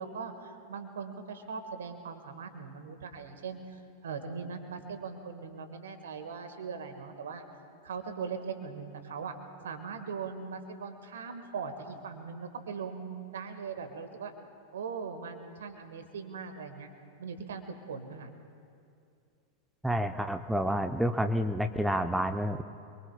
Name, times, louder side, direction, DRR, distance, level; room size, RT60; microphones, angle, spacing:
voice 1, 0.0-7.4 7.8-9.3 9.6-14.3 14.7-16.9 17.2-18.3, right 5 dB, 65° right, 8 dB, 1.5 m, -40 dB
voice 2, 19.8-22.6, equal, 5° right, 7 dB, 0.6 m, -29 dB
27.0 x 23.0 x 2.3 m, 2.4 s
figure-of-eight pair, 90°, 0 cm